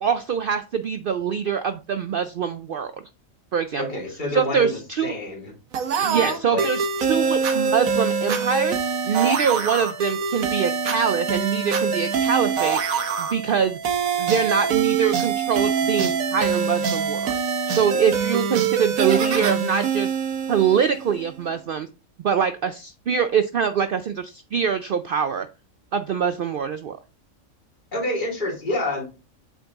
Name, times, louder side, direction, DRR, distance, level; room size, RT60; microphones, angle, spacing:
voice 1, 0.0-2.9 3.5-3.8 4.3-5.1 6.0-8.8 9.0-12.8 13.2-13.8 14.2-17.3 17.7-20.1 20.5-21.9 22.2-25.5 25.9-27.0, right 7 dB, 75° right, 10 dB, 0.5 m, -24 dB
voice 2, 3.8-5.5 6.1-6.7 27.9-29.0, left 1 dB, 35° left, -2 dB, 2.3 m, -28 dB
sound 1, 5.7-21.2, right 6 dB, 90° right, 1.3 m, -24 dB
8.1 x 4.0 x 3.5 m, 0.31 s
omnidirectional pair, 1.4 m